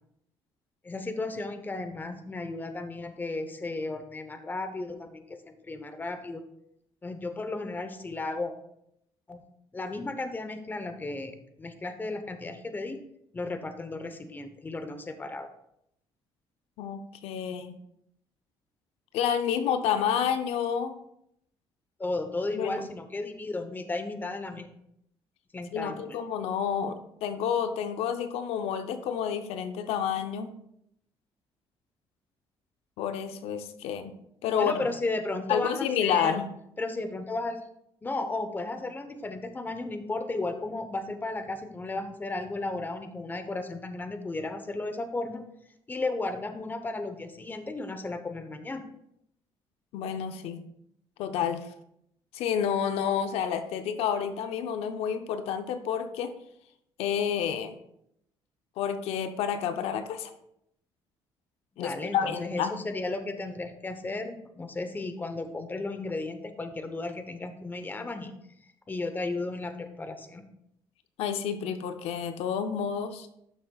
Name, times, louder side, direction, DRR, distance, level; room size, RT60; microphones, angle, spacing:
voice 1, 0.8-6.4 7.0-8.5 9.3-9.4 9.7-13.0 13.3-15.5 22.0-24.7 25.5-26.2 34.5-36.4 36.8-37.6 38.0-45.4 45.9-48.8 61.8-68.4 68.9-70.4, left 2 dB, 20° left, 8 dB, 0.9 m, -34 dB
voice 2, 16.8-17.8 19.1-21.0 22.5-22.8 25.7-30.5 33.0-34.1 34.4-34.8 35.5-36.5 49.9-50.7 51.2-51.7 52.3-56.4 57.0-57.8 58.8-60.3 61.8-62.7 71.2-73.3, left 8 dB, 85° left, 9 dB, 0.6 m, -29 dB
12.0 x 6.6 x 2.3 m, 0.77 s
cardioid pair, 115°, 10 cm